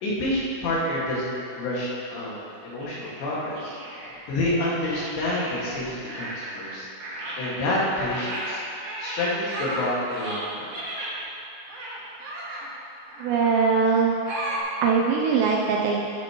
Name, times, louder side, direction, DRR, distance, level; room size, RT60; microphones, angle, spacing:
voice 1, 0.0-3.8 4.3-6.9 7.4-8.6 9.0-10.7, left 1 dB, 70° left, -7 dB, 4.0 m, -28 dB
sound 1, 2.8-4.3 4.9-6.7 7.0-11.2 11.7-12.7 13.1-13.6 14.3-14.6, right 1 dB, 60° right, 1.6 m, -35 dB
voice 2, 13.2-14.2 14.8-16.1, right 5 dB, 85° right, -1 dB, 2.6 m, -21 dB
13.0 x 10.5 x 3.0 m, 2.7 s
omnidirectional pair, 5.6 m